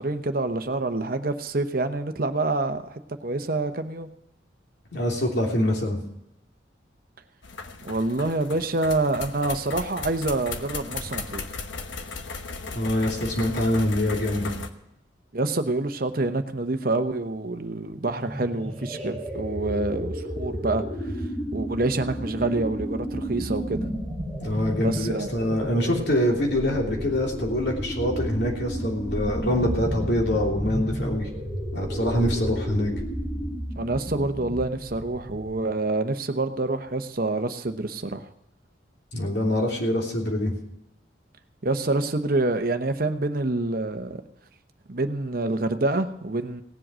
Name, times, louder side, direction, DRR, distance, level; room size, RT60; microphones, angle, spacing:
voice 1, 0.0-4.1 7.8-11.4 15.3-20.8 21.5-23.9 24.8-25.3 33.8-38.3 41.6-44.2 44.9-46.6, right 2 dB, 50° right, 8 dB, 1.0 m, -27 dB
voice 2, 4.9-6.0 12.6-14.5 24.4-31.3 31.7-32.9 39.1-40.5, left 1 dB, 60° left, 0 dB, 3.2 m, -25 dB
sound 1, 7.4-14.7, left 4 dB, 80° left, 1.1 m, -36 dB
sound 2, 18.2-35.7, equal, 5° left, 3.2 m, -32 dB
18.0 x 7.7 x 6.2 m, 0.81 s
head